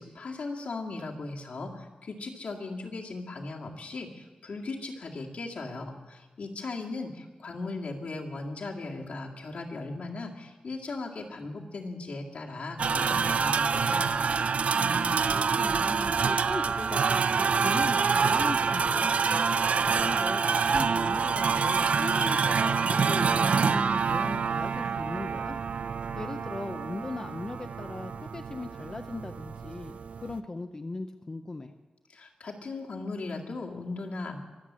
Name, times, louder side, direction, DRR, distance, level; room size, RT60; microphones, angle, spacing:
voice 1, 0.0-14.3 32.1-34.4, left 3 dB, 65° left, 0 dB, 2.1 m, -38 dB
sound 1, 12.8-30.4, right 5 dB, 65° right, 0.4 m, -27 dB
voice 2, 14.7-19.4 19.9-25.6 26.1-31.7, left 2 dB, 25° left, 7 dB, 0.6 m, -38 dB
23.5 x 8.2 x 7.4 m, 1.2 s
wide cardioid pair, 170°, 2 cm